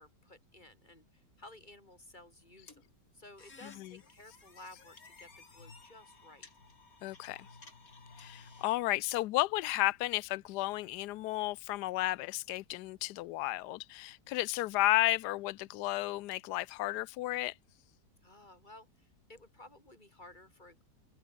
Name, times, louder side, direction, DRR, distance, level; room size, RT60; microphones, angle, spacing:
voice 1, 0.0-2.8 3.1-6.5 18.2-20.8, left 2 dB, 25° left, 6.0 m, -55 dB
sound 1, 2.7-8.7, left 4 dB, 55° left, 3.5 m, -56 dB
voice 2, 3.6-4.0 7.0-7.5 8.2-17.5, left 18 dB, 75° left, 1.2 m, -33 dB
omnidirectional pair, 1.8 m